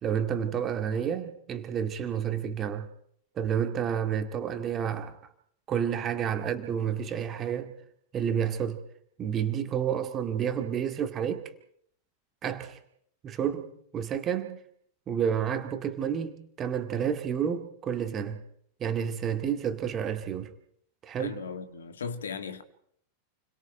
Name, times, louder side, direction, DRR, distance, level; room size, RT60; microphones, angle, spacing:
voice 1, 0.0-2.9 3.4-5.2 5.7-7.7 8.1-8.8 9.2-11.5 12.4-12.8 13.2-14.6 15.1-18.4 18.8-20.5 21.0-21.4, right 8 dB, 25° right, 2.2 m, -30 dB
voice 2, 21.2-22.6, left 6 dB, 65° left, 1.9 m, -37 dB
29.0 x 22.5 x 4.6 m
figure-of-eight pair, 90°, 0 cm